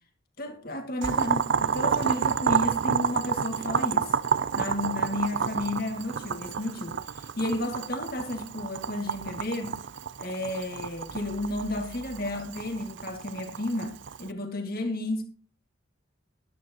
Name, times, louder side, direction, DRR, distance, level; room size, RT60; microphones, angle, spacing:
voice 1, 0.4-4.2 4.6-9.8 10.2-15.2, left 1 dB, 45° left, 2.0 m, -32 dB
Boiling, 1.0-14.3, right 6 dB, 60° right, 0.5 m, -29 dB
12.5 x 12.0 x 2.9 m
head